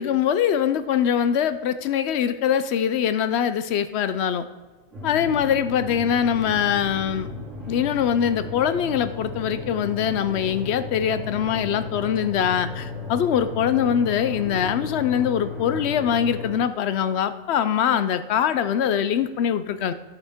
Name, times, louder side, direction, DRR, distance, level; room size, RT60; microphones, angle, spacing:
voice 1, 0.0-4.4 5.0-7.3 7.7-19.9, left 8 dB, 65° left, 12 dB, 0.7 m, -23 dB
sound 1, 4.9-16.6, left 3 dB, 70° right, 3.0 m, -34 dB
14.0 x 7.9 x 3.6 m, 1.2 s
omnidirectional pair, 1.3 m